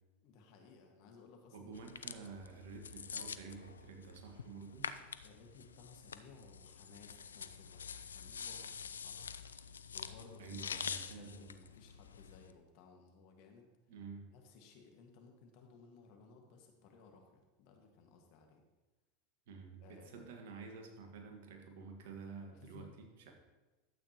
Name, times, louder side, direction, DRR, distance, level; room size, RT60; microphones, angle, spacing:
voice 1, 0.2-1.7 5.2-9.3 9.9-13.7 14.3-18.6 19.8-20.3 22.5-23.1, left 4 dB, 60° left, 3 dB, 1.8 m, -60 dB
voice 2, 1.5-4.9 10.4-11.5 13.9-14.4 19.5-23.3, right 5 dB, 70° right, 3 dB, 1.7 m, -50 dB
sound 1, 1.7-12.5, left 6 dB, 90° left, 0.4 m, -46 dB
12.0 x 8.2 x 3.0 m, 1.2 s
hypercardioid pair, 90°, 0 cm